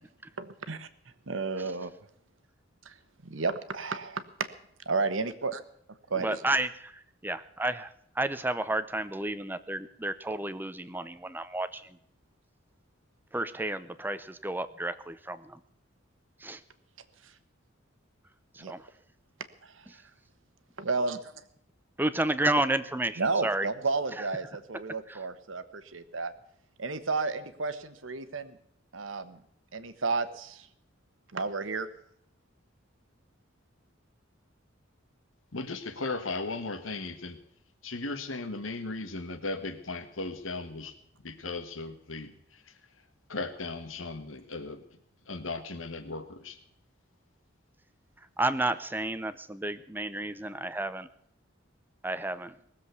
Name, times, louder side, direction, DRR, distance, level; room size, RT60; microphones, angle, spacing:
voice 1, 0.4-0.9 1.3-1.9 2.8-2.9 3.2-4.2 4.8-5.6 6.1-6.4 17.2-17.3 18.6-18.7 19.6-19.9 20.8-21.3 23.2-26.3 26.8-28.6 28.9-29.4 29.7-30.7 31.3-31.9, right 4 dB, 70° right, 11 dB, 1.2 m, -32 dB
voice 2, 6.2-6.9 7.2-7.9 8.2-11.8 13.3-15.6 16.4-16.6 18.6-18.8 22.0-23.7 25.1-25.2 48.4-51.1 52.0-52.5, right 2 dB, 10° right, 13 dB, 0.6 m, -31 dB
voice 3, 35.5-37.4 37.8-41.0 41.2-42.7 43.3-44.8 45.3-46.6, left 3 dB, 80° left, 8 dB, 1.7 m, -37 dB
19.5 x 7.6 x 8.2 m, 0.71 s
head